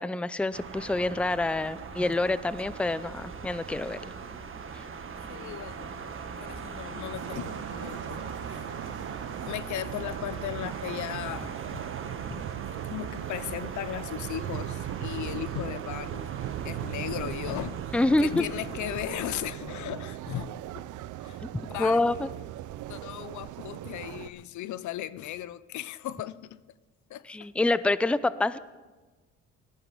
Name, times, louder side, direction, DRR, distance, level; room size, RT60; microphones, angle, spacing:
voice 1, 0.0-4.0 17.9-18.4 21.8-22.3 27.3-28.6, left 2 dB, 5° left, 0.5 m, -26 dB
sound 1, 0.5-19.5, right 5 dB, 45° right, 1.6 m, -40 dB
voice 2, 5.3-8.7 9.4-11.8 12.2-12.4 12.8-16.3 16.6-17.9 18.2-20.8 21.2-22.2 22.9-26.6 27.1-27.5, left 13 dB, 75° left, 0.6 m, -37 dB
sound 2, 7.2-24.3, right 14 dB, 80° right, 0.6 m, -39 dB
18.5 x 13.5 x 5.5 m
cardioid pair, 90°, 30 cm